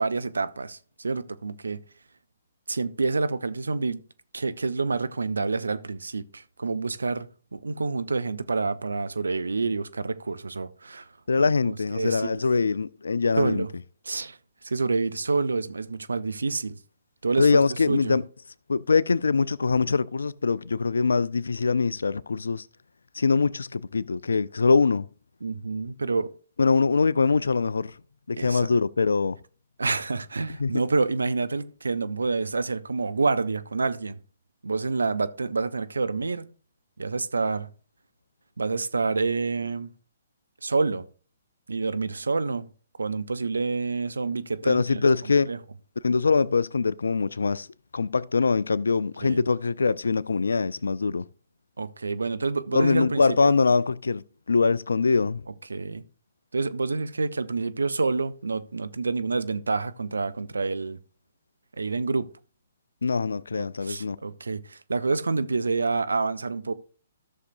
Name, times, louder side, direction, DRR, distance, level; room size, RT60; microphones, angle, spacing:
voice 1, 0.0-1.8 2.7-4.0 4.3-11.1 11.4-12.4 13.4-13.7 14.0-14.4 14.6-16.8 17.2-17.5 17.9-18.1 25.4-26.3 28.4-28.6 29.8-34.2 34.6-36.5 37.0-37.7 38.6-39.9 40.6-41.1 41.7-42.7 43.0-45.0 45.5-45.6 49.2-49.4 51.8-53.5 55.7-56.0 56.5-61.0 61.8-62.3 63.5-66.7, right 4 dB, 75° right, 0.6 m, -28 dB
voice 2, 11.3-13.7 17.4-18.2 18.7-22.7 23.2-25.1 26.6-28.0 28.3-29.4 30.6-30.8 44.6-45.5 46.0-47.7 47.9-51.2 52.7-55.4 63.0-64.2, left 4 dB, 75° left, 0.4 m, -23 dB
13.5 x 6.5 x 2.6 m
figure-of-eight pair, 130°, 0 cm